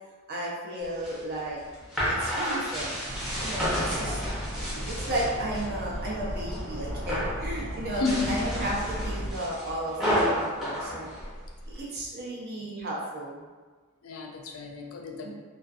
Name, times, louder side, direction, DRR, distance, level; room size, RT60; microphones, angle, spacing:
voice 1, 0.3-1.6 2.0-4.2 4.9-11.1 11.7-13.4 15.2-15.3, right 1 dB, 45° right, -4 dB, 0.6 m, -34 dB
sound 1, 0.8-5.7 6.1-6.6 6.9-7.4 7.9-11.8, equal, ahead, 0.6 m, -31 dB
sound 2, 3.0-9.3, equal, 70° right, 0.9 m, -35 dB
voice 2, 3.8-4.2 7.9-8.5 14.0-15.3, left 3 dB, 70° left, 1 dB, 0.4 m, -32 dB
2.4 x 2.4 x 2.4 m, 1.4 s
head